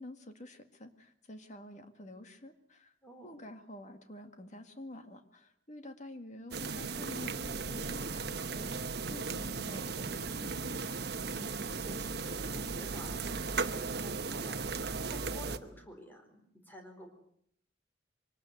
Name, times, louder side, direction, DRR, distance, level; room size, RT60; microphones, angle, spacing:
voice 1, 0.0-2.9 3.2-10.8, left 1 dB, 40° left, 7 dB, 2.1 m, -49 dB
voice 2, 3.0-3.3 11.3-17.1, equal, 10° left, 3 dB, 4.5 m, -50 dB
sound 1, 6.5-15.6, right 4 dB, 60° right, 1.1 m, -36 dB
24.0 x 19.5 x 8.1 m, 0.69 s
head